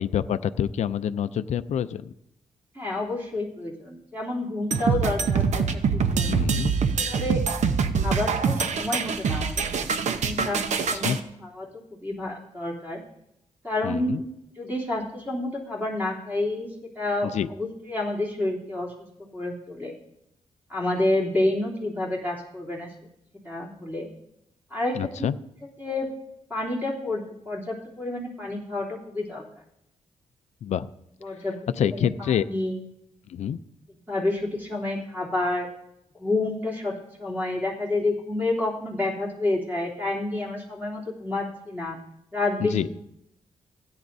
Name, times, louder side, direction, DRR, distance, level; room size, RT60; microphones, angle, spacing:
voice 1, 0.0-2.1 6.3-6.7 11.0-11.2 13.8-14.2 17.2-17.5 25.0-25.4 30.6-30.9 31.8-32.5 33.3-33.6 42.6-42.9, left 9 dB, 65° left, 12 dB, 0.4 m, -27 dB
voice 2, 2.7-5.7 5.9-6.4 7.0-7.4 8.0-9.7 10.2-11.7 12.0-13.0 13.6-14.2 14.6-18.9 19.3-19.9 20.7-22.9 23.4-24.1 24.7-25.0 25.8-26.1 26.5-29.4 31.2-32.8 34.1-35.7 36.2-42.0 42.3-42.9, left 2 dB, 15° right, -4 dB, 3.1 m, -29 dB
sound 1, 4.7-11.2, right 5 dB, 70° right, 0.8 m, -24 dB
16.5 x 8.9 x 2.7 m, 0.79 s
cardioid pair, 95°, 13 cm